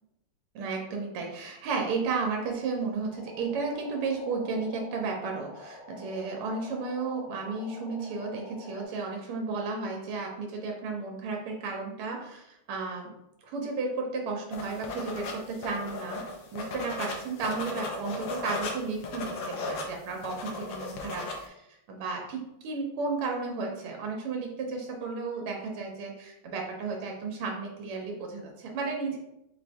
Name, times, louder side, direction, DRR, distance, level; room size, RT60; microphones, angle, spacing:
voice 1, 0.5-13.1 13.4-29.2, right 4 dB, 85° right, 1 dB, 1.6 m, -33 dB
sound 1, 3.1-8.8, left 2 dB, 40° left, 0.7 m, -47 dB
sound 2, 14.5-21.4, left 3 dB, 70° left, 1.3 m, -36 dB
4.4 x 2.5 x 3.4 m, 0.84 s
omnidirectional pair, 2.4 m